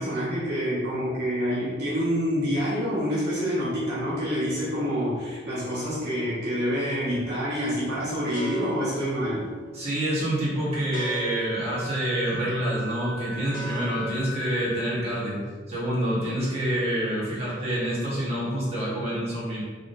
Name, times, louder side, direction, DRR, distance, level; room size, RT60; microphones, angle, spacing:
voice 1, 0.0-9.5, equal, 60° right, -9 dB, 1.0 m, -27 dB
sound 1, 7.1-7.2 7.7-14.0, right 3 dB, 50° left, 1.0 m, -42 dB
voice 2, 9.7-15.4 15.7-19.6, right 1 dB, 35° right, -8 dB, 1.3 m, -27 dB
Wind instrument woodwind instrument, 11.5-15.0, left 2 dB, 30° left, 0.3 m, -39 dB
3.7 x 3.5 x 2.6 m, 1.4 s
head